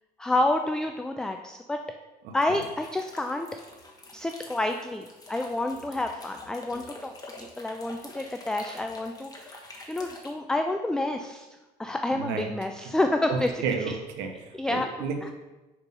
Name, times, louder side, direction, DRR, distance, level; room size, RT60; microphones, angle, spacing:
voice 1, 0.2-1.8 2.3-3.5 4.1-7.1 7.4-9.6 9.9-11.5 11.8-14.0 14.5-14.9 15.2-15.3, left 2 dB, 5° left, 5 dB, 0.3 m, -29 dB
sound 1, 2.4-10.3, left 2 dB, 20° left, 1.3 m, -47 dB
voice 2, 12.1-12.5 13.3-15.3, right 5 dB, 90° right, 4 dB, 0.8 m, -32 dB
5.2 x 4.5 x 5.3 m, 1.1 s
cardioid pair, 110°, 17 cm